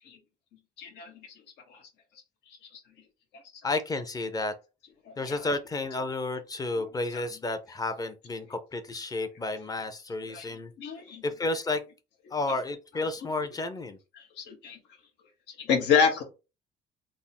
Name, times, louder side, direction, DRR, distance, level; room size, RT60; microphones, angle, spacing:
voice 1, 0.8-1.1 1.7-1.8 2.7-2.8 5.3-5.4 6.8-6.9 10.3-10.5 10.8-11.2 14.2-14.8 15.6-16.2, left 6 dB, 80° left, 1.0 m, -27 dB
voice 2, 3.6-4.6 5.2-10.7 11.2-11.8 12.3-14.0, left 2 dB, 20° left, 0.6 m, -31 dB
3.5 x 2.1 x 4.2 m
cardioid pair, 110°, 17 cm